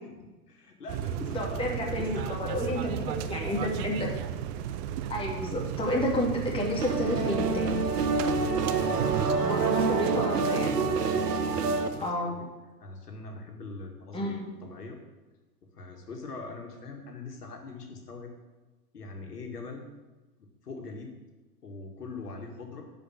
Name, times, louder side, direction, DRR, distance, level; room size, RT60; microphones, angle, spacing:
voice 1, 0.0-2.6 8.2-9.8 11.0-12.5 12.8-15.0 15.7-18.3 18.9-19.9 20.4-21.2 21.6-22.8, left 3 dB, 75° left, 2 dB, 2.1 m, -43 dB
sound 1, 0.9-12.1, right 10 dB, 30° right, 0.6 m, -35 dB
voice 2, 1.3-4.1 5.1-7.8 9.4-10.7 12.0-12.3 14.1-14.5, left 1 dB, 10° left, -2 dB, 2.5 m, -30 dB
sound 2, 6.8-11.9, right 4 dB, 80° right, 1.1 m, -27 dB
11.0 x 5.2 x 8.3 m, 1.2 s
figure-of-eight pair, 105°, 47 cm